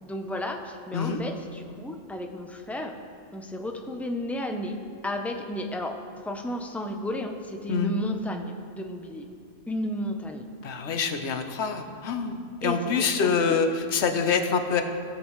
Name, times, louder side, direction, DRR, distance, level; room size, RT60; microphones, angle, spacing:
voice 1, 0.0-2.9 3.3-4.8 5.0-6.0 6.2-9.3 9.7-10.5 12.6-13.6 14.1-14.2, left 1 dB, ahead, 3 dB, 0.3 m, -33 dB
voice 2, 10.6-14.8, left 5 dB, 65° left, 6 dB, 1.0 m, -26 dB
17.0 x 7.6 x 3.1 m, 2.3 s
omnidirectional pair, 1.3 m